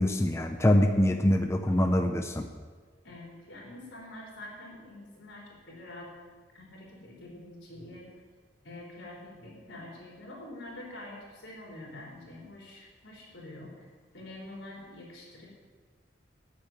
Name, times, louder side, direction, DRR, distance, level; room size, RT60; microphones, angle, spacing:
voice 1, 0.0-2.5, left 1 dB, 15° left, 5 dB, 0.6 m, -24 dB
voice 2, 3.0-6.1 6.5-8.1 8.6-13.7 14.1-15.6, left 1 dB, 85° left, -4 dB, 4.1 m, -46 dB
9.5 x 7.4 x 8.8 m, 1.5 s
head